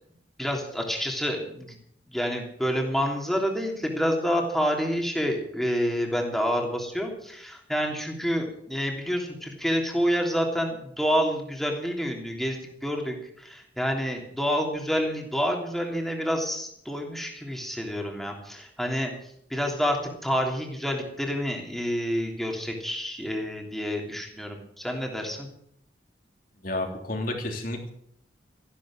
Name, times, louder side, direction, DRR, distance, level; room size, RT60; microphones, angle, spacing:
voice 1, 0.4-1.8 2.1-25.5, equal, ahead, 1 dB, 3.2 m, -28 dB
voice 2, 26.6-27.9, left 1 dB, 55° left, 2 dB, 3.4 m, -31 dB
14.5 x 11.5 x 7.5 m, 0.71 s
head